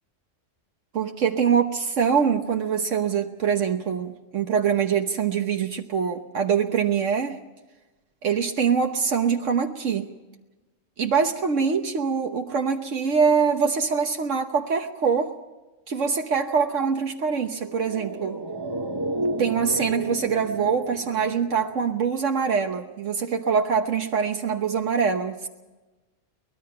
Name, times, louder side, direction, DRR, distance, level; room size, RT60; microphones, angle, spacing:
voice 1, 0.9-7.4 8.2-10.1 11.0-15.3 15.9-18.4 19.4-25.5, right 6 dB, 75° right, 4 dB, 1.4 m, -24 dB
sound 1, 17.5-22.1 22.4-22.5, right 2 dB, 20° right, 1.1 m, -32 dB
23.5 x 19.5 x 5.8 m, 1.2 s
omnidirectional pair, 1.3 m